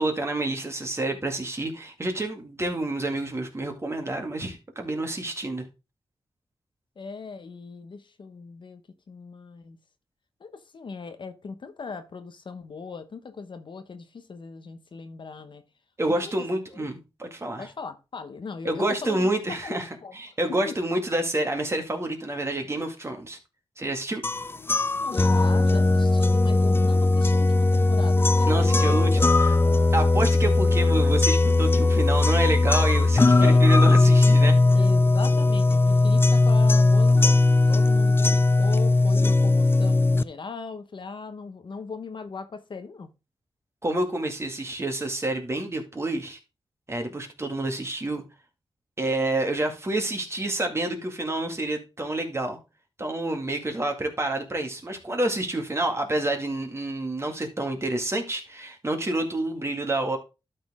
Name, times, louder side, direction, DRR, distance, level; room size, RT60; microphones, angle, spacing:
voice 1, 0.0-5.6 16.0-17.7 18.6-19.9 20.1-23.4 23.8-24.2 28.5-29.1 29.4-29.6 29.9-34.5 43.8-46.4 46.9-48.2 49.0-52.6 53.0-60.2, right 2 dB, 30° right, 2.0 m, -28 dB
voice 2, 7.0-8.8 9.1-9.8 10.4-15.6 16.2-16.5 16.7-16.9 17.6-19.3 19.6-20.3 20.7-20.8 24.5-28.9 33.4-33.6 34.7-43.1, left 4 dB, 55° left, 1.0 m, -39 dB
sound 1, 24.2-40.2, left 2 dB, 25° left, 0.4 m, -19 dB
12.0 x 4.4 x 3.6 m
cardioid pair, 75°, 10 cm